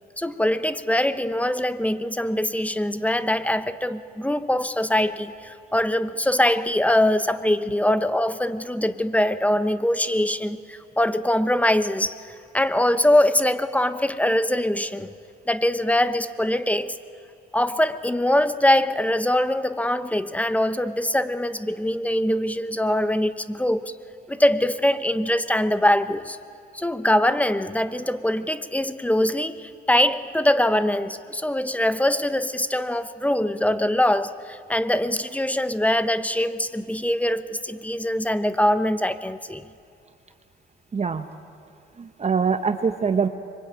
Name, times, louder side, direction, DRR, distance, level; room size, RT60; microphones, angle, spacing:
voice 1, 0.2-12.2 12.5-15.1 15.5-17.0 17.5-23.9 24.3-26.4 26.7-39.6, left 1 dB, 5° left, 13 dB, 1.0 m, -23 dB
voice 2, 40.9-41.3 42.0-43.3, right 5 dB, 35° right, 8 dB, 1.1 m, -23 dB
25.5 x 23.5 x 9.0 m, 2.6 s
cardioid pair, 90°, 20 cm